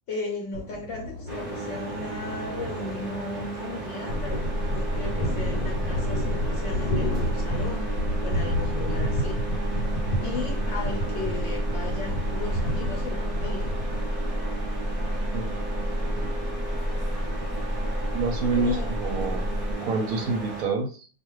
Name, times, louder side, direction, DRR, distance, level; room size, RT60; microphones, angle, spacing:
voice 1, 0.1-7.9 8.2-9.4 10.2-13.7 18.5-18.9, left 3 dB, 60° left, 0 dB, 0.8 m, -36 dB
Thunder, 0.5-15.3, left 1 dB, 85° left, 1.2 m, -32 dB
sound 1, 1.3-20.6, right 3 dB, 45° right, 0.8 m, -35 dB
sound 2, 4.1-19.8, equal, 15° left, 1.0 m, -30 dB
voice 2, 18.1-19.4 19.8-21.1, right 4 dB, 70° right, 3 dB, 0.9 m, -28 dB
2.4 x 2.4 x 3.0 m, 0.38 s
omnidirectional pair, 1.7 m